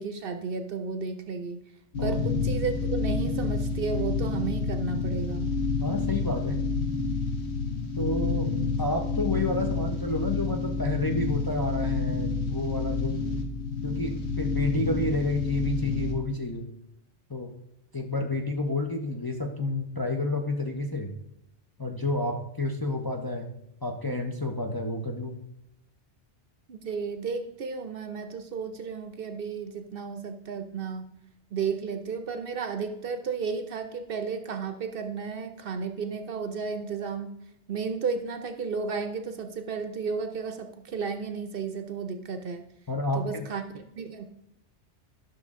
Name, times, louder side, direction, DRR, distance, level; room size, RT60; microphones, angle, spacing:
voice 1, 0.0-1.6 2.0-5.5 26.7-31.0 31.5-37.4 37.7-42.6 43.1-44.3, right 5 dB, 60° right, 8 dB, 0.8 m, -33 dB
sound 1, 1.9-16.1, left 4 dB, 65° left, 1.4 m, -29 dB
voice 2, 5.8-6.6 8.0-8.5 8.8-13.2 13.8-16.7 17.3-17.5 17.9-21.2 21.8-23.5 23.8-25.4 42.9-43.5, left 2 dB, 25° left, 2 dB, 0.5 m, -30 dB
11.5 x 6.1 x 3.6 m, 0.82 s
omnidirectional pair, 1.2 m